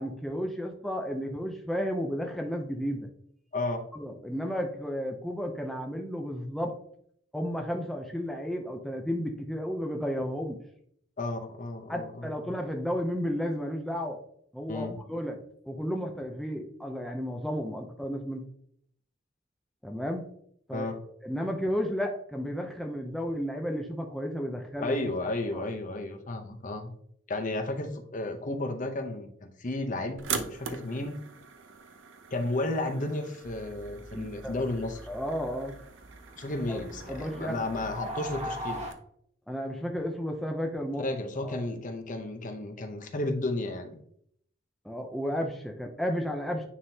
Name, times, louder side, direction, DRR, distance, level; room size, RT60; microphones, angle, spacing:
voice 1, 0.0-3.1 3.9-6.7 7.3-10.6 11.9-14.2 14.5-15.4 15.7-18.4 19.8-20.3 20.7-20.9 21.2-25.0 25.5-25.6 34.1-34.6 35.1-35.8 36.7-36.8 37.1-37.7 39.5-41.1 41.4-41.7 44.8-46.6, equal, ahead, 2 dB, 0.5 m, -33 dB
voice 2, 11.2-12.5 14.7-15.0 20.7-21.0 24.8-26.9 27.3-31.2 32.3-35.0 36.4-38.8 41.0-44.0, left 2 dB, 45° left, 5 dB, 0.8 m, -33 dB
sound 1, 30.2-38.9, right 6 dB, 85° right, 0.7 m, -42 dB
sound 2, 33.4-38.9, equal, 35° right, 1.2 m, -41 dB
9.5 x 3.7 x 2.8 m, 0.67 s
head